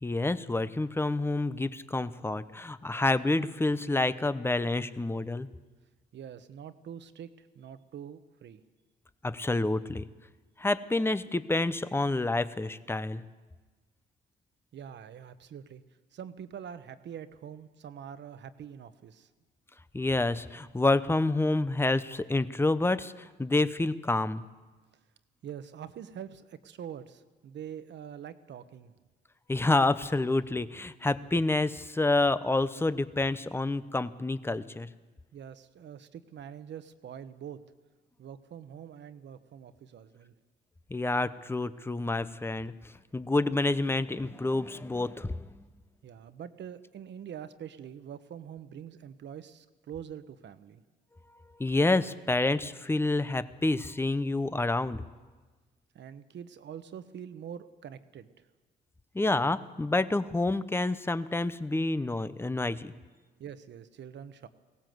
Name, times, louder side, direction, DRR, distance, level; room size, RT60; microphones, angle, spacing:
voice 1, 0.0-5.5 9.2-10.1 10.6-13.2 19.9-24.4 29.5-34.9 40.9-42.7 43.1-45.6 51.6-55.0 59.1-62.9, left 2 dB, 10° left, 14 dB, 0.8 m, -28 dB
voice 2, 6.1-8.6 14.7-15.8 16.1-19.3 25.4-28.9 35.3-37.6 38.2-40.3 46.0-50.8 55.9-58.3 63.4-64.5, right 8 dB, 65° right, 11 dB, 1.2 m, -44 dB
21.0 x 17.5 x 7.9 m, 1.3 s
cardioid pair, 90°, 20 cm